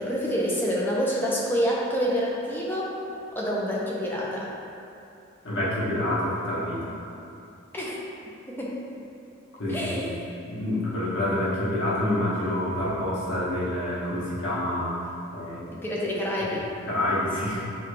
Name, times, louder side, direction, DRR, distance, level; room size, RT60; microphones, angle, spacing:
voice 1, 0.0-2.9 3.3-4.5 7.7-8.0 8.5-8.8 9.7-10.1 15.7-16.7, equal, 10° left, -5 dB, 0.6 m, -27 dB
voice 2, 5.4-6.9 9.6-10.1 10.5-14.9 15.3-15.7 16.9-17.7, left 1 dB, 70° left, -8 dB, 1.1 m, -27 dB
6.8 x 2.3 x 3.2 m, 2.6 s
head